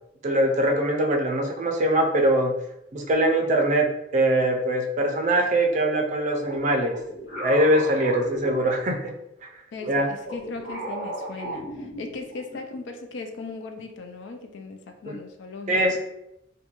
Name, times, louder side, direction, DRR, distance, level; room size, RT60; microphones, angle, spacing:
voice 1, 0.2-2.5 2.9-7.0 7.4-9.1 9.9-10.1 15.0-15.1 15.7-16.0, right 1 dB, 40° right, 2 dB, 0.4 m, -22 dB
sound 1, 6.4-9.2 9.8-12.5, equal, 40° left, 0.9 m, -36 dB
voice 2, 9.7-15.8, left 3 dB, 70° left, 5 dB, 0.4 m, -38 dB
2.4 x 2.1 x 2.9 m, 0.84 s
head